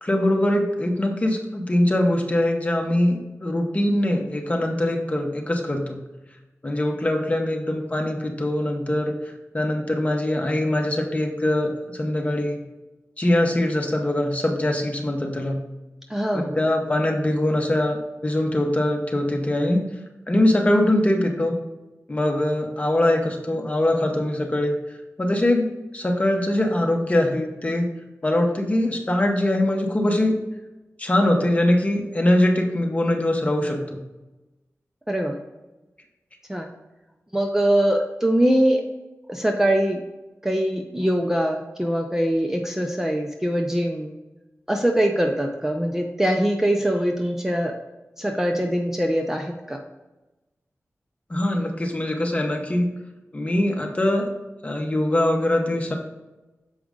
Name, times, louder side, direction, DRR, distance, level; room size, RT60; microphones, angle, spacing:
voice 1, 0.0-6.0 6.6-9.2 9.5-12.6 13.2-15.6 16.3-19.9 20.3-21.6 22.1-24.7 25.2-25.7 25.9-27.9 28.2-30.3 31.0-34.0 51.3-52.9 53.3-54.3 54.6-56.0, left 1 dB, 25° left, 2 dB, 1.1 m, -22 dB
voice 2, 16.1-16.6 35.1-35.4 36.5-36.7 37.3-38.8 39.3-40.0 40.4-44.1 44.7-47.7 48.2-49.8, right 1 dB, 10° right, 3 dB, 0.5 m, -22 dB
7.3 x 4.9 x 3.8 m, 1.1 s
wide cardioid pair, 110°, 5 cm